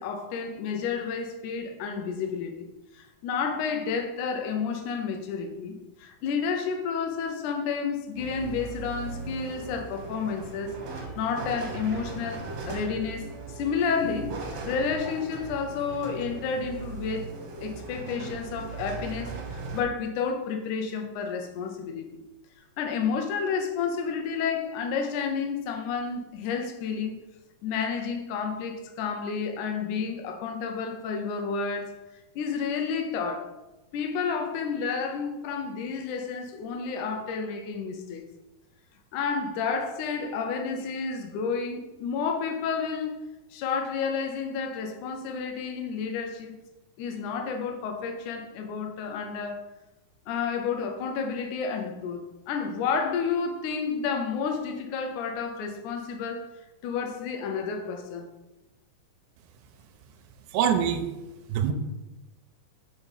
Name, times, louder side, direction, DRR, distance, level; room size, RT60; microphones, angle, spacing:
voice 1, 0.0-2.7 2.9-5.7 6.0-17.4 17.6-22.2 22.8-27.2 27.6-32.0 32.4-33.5 33.9-38.3 39.1-43.2 43.5-46.6 47.0-49.7 50.3-56.5 56.8-58.3, left 5 dB, 75° left, 2.2 m, -31 dB
sound 1, 8.2-19.8, right 4 dB, 55° right, 1.8 m, -38 dB
voice 2, 60.5-61.1 61.5-61.7, right 8 dB, 90° right, 2.2 m, -24 dB
5.4 x 4.7 x 5.6 m
omnidirectional pair, 3.7 m